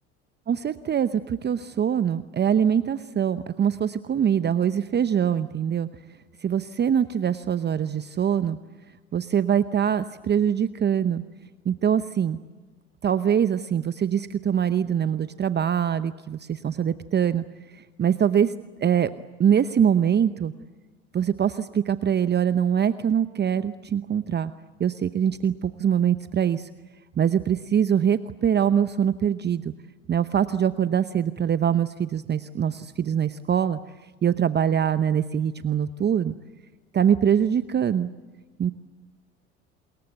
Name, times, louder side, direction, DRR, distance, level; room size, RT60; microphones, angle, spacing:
voice 1, 0.5-5.9 6.4-8.6 9.1-11.2 11.6-12.4 13.0-17.4 17.7-18.5 18.8-19.1 19.4-20.5 21.1-24.5 24.8-26.7 27.2-29.7 30.1-33.8 34.2-36.4 36.9-38.1 38.6-38.7, right 8 dB, 30° right, 13 dB, 0.9 m, -23 dB
28.0 x 21.5 x 8.1 m, 1.3 s
hypercardioid pair, 70°, 34 cm